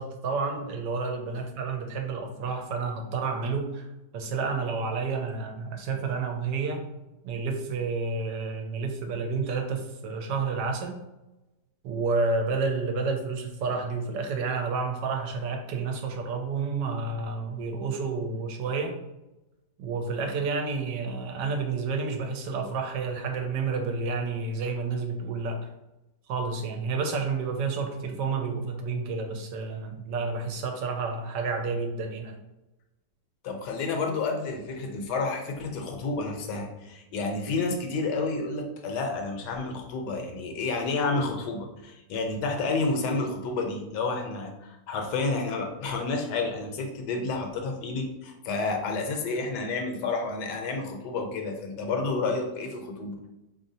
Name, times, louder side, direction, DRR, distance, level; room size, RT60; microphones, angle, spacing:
voice 1, 0.0-3.9 4.1-6.8 7.2-11.0 11.8-18.9 19.8-25.6 26.3-32.3, right 4 dB, 90° right, 4 dB, 1.3 m, -30 dB
voice 2, 33.4-53.2, left 3 dB, 75° left, 3 dB, 1.2 m, -30 dB
4.2 x 3.1 x 2.7 m, 0.98 s
omnidirectional pair, 1.8 m